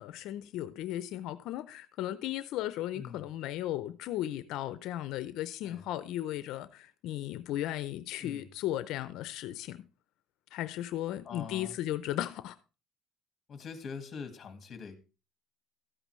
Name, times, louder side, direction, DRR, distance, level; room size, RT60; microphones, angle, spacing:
voice 1, 0.0-9.8 10.5-12.6, left 13 dB, 70° left, 0.5 m, -36 dB
voice 2, 2.9-3.3 5.6-5.9 8.2-8.5 11.2-11.8 13.5-15.0, left 5 dB, 35° left, 1.6 m, -43 dB
13.5 x 8.8 x 3.1 m
cardioid pair, 140°, 0 cm